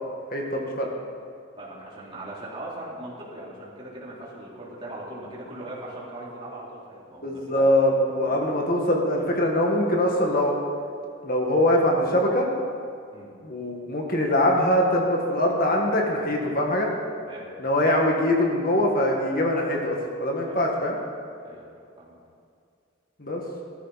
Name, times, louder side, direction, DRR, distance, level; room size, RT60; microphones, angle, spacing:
voice 1, 0.3-0.9 7.2-10.6 11.2-12.5 13.4-16.9 17.6-21.0 23.2-23.4, left 1 dB, 45° left, 0 dB, 1.7 m, -23 dB
voice 2, 1.6-7.7 8.2-8.5 13.1-13.3 17.3-17.4 20.5-20.6 21.4-21.6 22.0-22.1, right 1 dB, 25° right, -7 dB, 3.7 m, -40 dB
17.0 x 13.5 x 4.2 m, 2.3 s
head